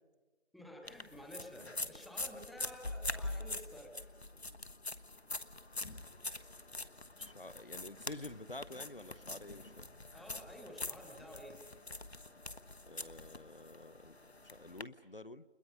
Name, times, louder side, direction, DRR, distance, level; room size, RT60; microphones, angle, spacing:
voice 1, 0.5-3.9 10.1-11.6, equal, ahead, 2 dB, 0.9 m, -51 dB
sound 1, 0.9-14.8, left 2 dB, 75° left, 1.3 m, -44 dB
voice 2, 7.2-9.9 12.8-14.2 14.5-15.4, left 2 dB, 55° left, 15 dB, 0.8 m, -49 dB
30.0 x 26.5 x 5.5 m, 1.3 s
figure-of-eight pair, 180°, 32 cm